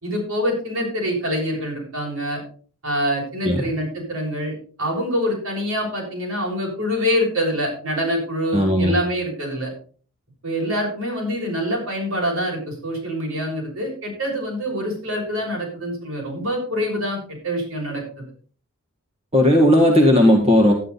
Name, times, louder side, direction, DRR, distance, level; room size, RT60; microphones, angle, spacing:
voice 1, 0.0-2.4 2.8-9.7 10.4-17.2 17.4-18.0, equal, 75° right, -1 dB, 6.5 m, -25 dB
voice 2, 8.5-8.9 19.3-20.7, left 1 dB, 30° right, 1 dB, 1.8 m, -15 dB
12.0 x 10.0 x 4.1 m, 0.42 s
head